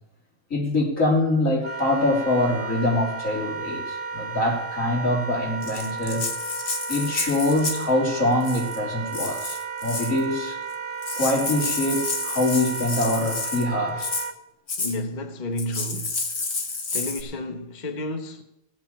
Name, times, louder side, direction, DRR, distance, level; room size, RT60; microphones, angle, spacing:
voice 1, 0.5-6.2 6.9-10.6 11.1-14.1, left 1 dB, 75° left, 3.4 m, -24 dB
Wind instrument woodwind instrument, 1.6-14.4, right 5 dB, 25° right, 0.9 m, -33 dB
Rattle (instrument), 5.6-7.9 8.4-8.8 9.1-10.2 10.7-10.8 11.0-13.7 14.0-14.3 14.7-15.0 15.6-17.2, left 3 dB, 55° left, 1.8 m, -30 dB
voice 2, 14.8-16.2 16.9-18.4, left 1 dB, 35° left, 1.2 m, -31 dB
16.5 x 6.0 x 8.7 m
omnidirectional pair, 1.4 m